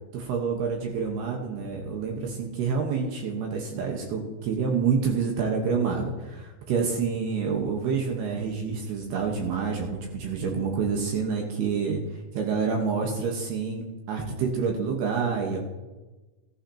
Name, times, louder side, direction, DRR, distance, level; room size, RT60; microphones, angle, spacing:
voice 1, 0.1-12.0 12.3-15.7, right 5 dB, 70° right, 1 dB, 2.7 m, -28 dB
17.0 x 11.5 x 2.9 m, 1.2 s
omnidirectional pair, 5.8 m